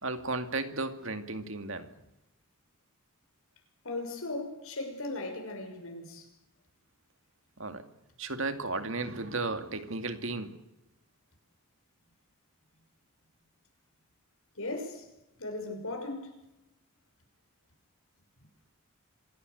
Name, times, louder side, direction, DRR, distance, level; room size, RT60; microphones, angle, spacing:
voice 1, 0.0-1.9 7.6-7.9 8.2-10.6, right 3 dB, 60° right, 2.3 m, -34 dB
voice 2, 3.8-6.3 14.6-15.1 15.4-16.4, left 2 dB, 70° left, 6.1 m, -37 dB
26.5 x 17.0 x 8.2 m
head